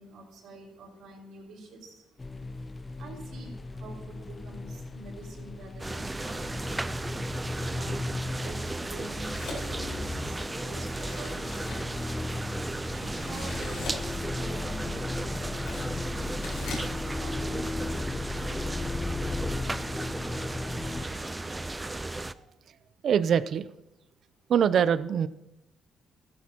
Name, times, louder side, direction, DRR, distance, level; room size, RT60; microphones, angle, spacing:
voice 1, 0.0-2.1 3.0-6.8 7.7-9.4 9.6-11.8 12.9-16.5 17.2-18.2, right 2 dB, 75° right, -1 dB, 5.1 m, -46 dB
sound 1, 2.2-21.1, left 2 dB, 25° left, 0.7 m, -36 dB
sound 2, 5.8-17.1, left 3 dB, 80° left, 5.4 m, -45 dB
sound 3, 5.8-22.3, right 2 dB, 15° right, 0.5 m, -35 dB
voice 2, 21.0-21.6 23.0-23.7 24.5-25.3, right 8 dB, 60° right, 15 dB, 0.6 m, -25 dB
15.0 x 13.5 x 2.9 m, 0.90 s
cardioid pair, 90°, 0 cm